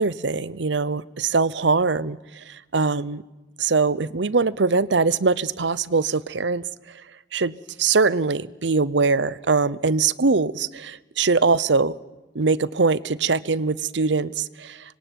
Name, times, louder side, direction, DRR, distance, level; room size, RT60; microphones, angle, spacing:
voice 1, 0.0-3.2 3.6-6.6 7.3-11.9 12.3-15.0, right 4 dB, 75° right, 0.8 m, -22 dB
26.0 x 22.5 x 9.3 m
head